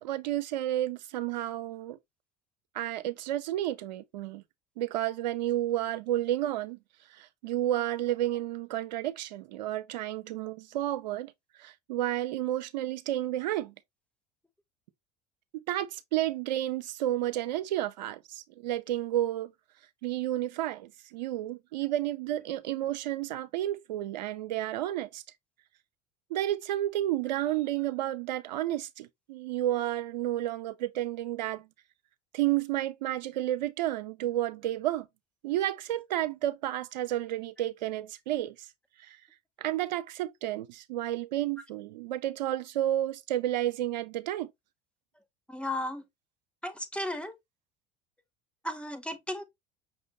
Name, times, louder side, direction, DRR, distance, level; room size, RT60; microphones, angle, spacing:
voice 1, 0.0-2.0 2.7-4.4 4.8-6.8 7.2-11.3 11.6-13.7 15.5-19.5 20.0-25.2 26.3-31.7 32.3-35.1 35.4-38.6 39.0-39.2 39.6-44.5, right 13 dB, 85° right, 0.6 m, -31 dB
voice 2, 45.5-46.0 46.6-47.4 48.6-49.4, left 1 dB, 5° left, 1.0 m, -34 dB
5.8 x 2.5 x 3.1 m
hypercardioid pair, 80°, 21 cm